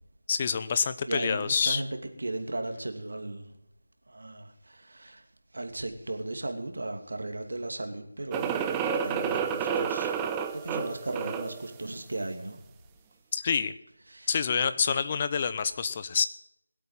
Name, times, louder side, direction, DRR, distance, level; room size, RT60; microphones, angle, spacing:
voice 1, 0.3-1.8 13.3-13.8 14.3-16.2, left 6 dB, 30° left, 0.8 m, -27 dB
voice 2, 1.1-3.5 4.1-5.2 5.5-10.1 10.5-12.6 14.1-14.4, right 2 dB, 70° right, 2.6 m, -36 dB
sound 1, 8.3-11.6, right 7 dB, 10° right, 0.7 m, -30 dB
21.0 x 8.4 x 7.4 m
figure-of-eight pair, 165°, 0 cm